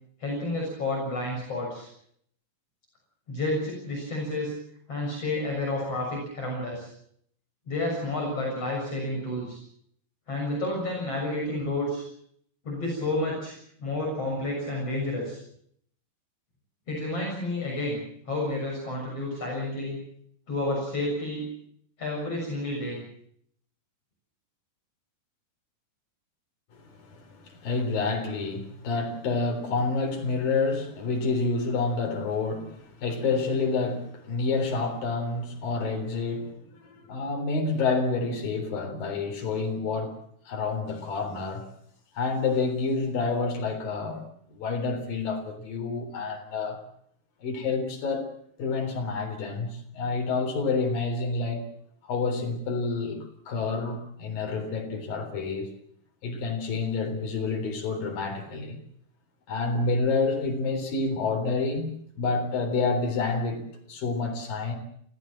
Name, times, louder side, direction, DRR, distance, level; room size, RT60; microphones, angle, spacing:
voice 1, 0.2-1.9 3.3-4.5 4.9-6.9 7.7-9.6 10.3-12.1 12.6-15.4 16.9-18.0 18.3-20.0 20.5-21.4 22.0-23.0, left 2 dB, 45° left, 7.9 m, -30 dB
voice 2, 26.7-40.2 40.5-41.7 42.2-44.2 44.5-46.8 47.4-48.3 48.6-51.6 52.0-55.7 56.2-58.8 59.5-63.6 63.9-64.8, left 4 dB, 80° left, 5.6 m, -28 dB
27.0 x 16.5 x 7.6 m
omnidirectional pair, 4.0 m